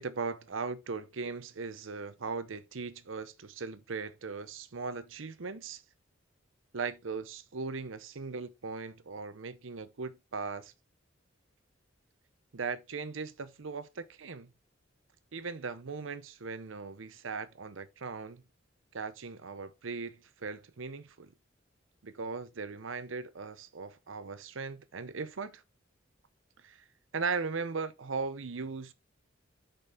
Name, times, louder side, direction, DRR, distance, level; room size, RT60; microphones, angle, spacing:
voice 1, 0.0-5.8 6.7-10.7 12.5-14.5 15.3-18.4 18.9-21.3 22.0-25.6 26.6-26.8 27.1-28.9, right 4 dB, 85° right, 0.7 m, -38 dB
6.7 x 5.3 x 3.7 m
head